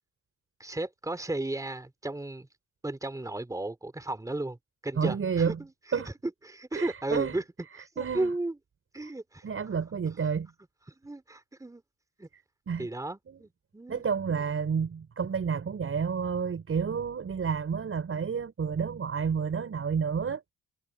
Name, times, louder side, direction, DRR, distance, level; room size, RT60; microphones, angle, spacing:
voice 1, 0.6-2.5 2.8-4.6 4.8-6.0 6.4-7.4 7.8-8.5 8.9-9.4 10.9-11.8 12.2-12.3 12.8-14.0, right 2 dB, 10° right, 3.3 m, -34 dB
voice 2, 4.9-5.6 5.9-6.1 6.7-7.4 8.0-8.3 9.0-9.1 9.4-10.5 12.3-12.9 13.3-13.4 13.9-20.5, right 6 dB, 45° right, 6.4 m, -30 dB
cardioid pair, 90°, 30 cm